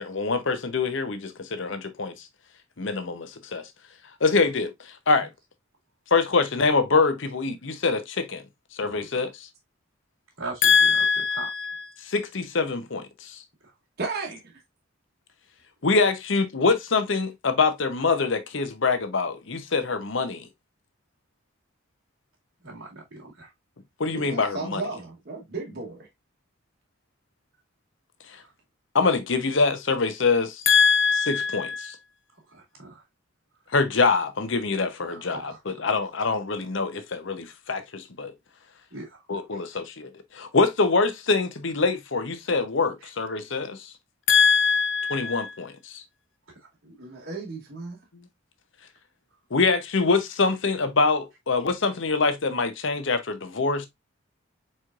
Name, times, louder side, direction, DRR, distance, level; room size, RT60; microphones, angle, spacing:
voice 1, 0.0-2.1 2.8-3.6 4.2-4.7 5.1-5.3 6.1-8.4 8.8-9.3 10.6-13.4 15.8-20.5 24.0-24.8 28.9-32.0 33.7-38.3 39.3-43.9 44.3-46.0 49.5-53.9, left 4 dB, 60° left, 0.8 m, -24 dB
voice 2, 10.4-11.9 22.6-23.5 32.5-33.0 35.1-35.6 38.9-39.2 39.5-39.6, right 3 dB, 90° right, 2.1 m, -40 dB
voice 3, 14.0-14.4 24.1-26.1 46.8-48.0, right 3 dB, 50° right, 1.1 m, -34 dB
4.6 x 4.3 x 2.4 m
head